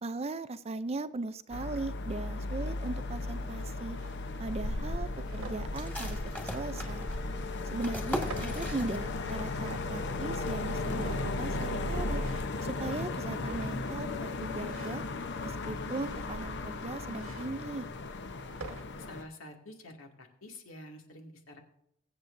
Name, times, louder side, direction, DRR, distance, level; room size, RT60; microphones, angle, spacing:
voice 1, 0.0-4.0 4.4-6.2 6.5-7.1 7.7-12.2 12.6-15.0 15.4-17.9, right 3 dB, 30° right, 13 dB, 0.5 m, -38 dB
sound 1, 1.5-19.2, left 2 dB, 60° left, 0.8 m, -35 dB
sound 2, 4.0-4.2 4.9-5.6 6.6-7.2 8.0-8.7 9.3-9.9 10.8-11.5 12.1-12.6 13.3-14.0 14.6-15.1 15.8-16.5 17.1-17.5 18.3-18.9, right 3 dB, 90° right, 1.5 m, -48 dB
sound 3, 5.7-9.4 9.7-9.8 10.2-10.7, equal, 10° left, 1.8 m, -40 dB
voice 2, 19.0-21.6, left 1 dB, 90° left, 2 dB, 2.2 m, -48 dB
23.0 x 8.0 x 2.6 m, 0.80 s
head